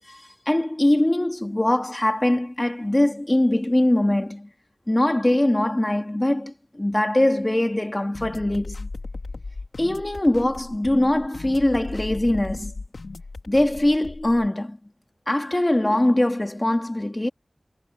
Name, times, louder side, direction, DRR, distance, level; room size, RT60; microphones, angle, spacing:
voice 1, 0.1-4.5 4.9-8.9 9.8-12.7 13.5-14.8 15.3-17.3, left 1 dB, 25° left, 3.0 m, -22 dB
sound 1, 8.1-14.5, left 3 dB, 80° left, 3.1 m, -36 dB
wide cardioid pair, 70°, 0 cm